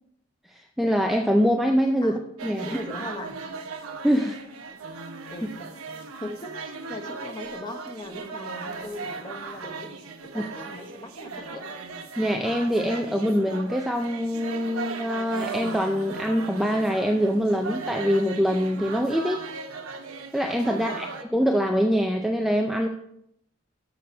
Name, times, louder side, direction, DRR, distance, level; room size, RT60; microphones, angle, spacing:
voice 1, 0.8-2.8 4.0-4.4 10.3-10.4 12.2-19.5 20.3-21.1 21.3-22.9, equal, ahead, 3 dB, 0.4 m, -24 dB
sound 1, 2.4-21.2, right 4 dB, 90° right, 0.9 m, -37 dB
voice 2, 2.6-3.4 5.3-5.7 6.2-10.1 10.3-11.6 20.7-21.0, left 1 dB, 20° left, 6 dB, 0.8 m, -39 dB
6.9 x 6.7 x 5.2 m, 0.76 s
head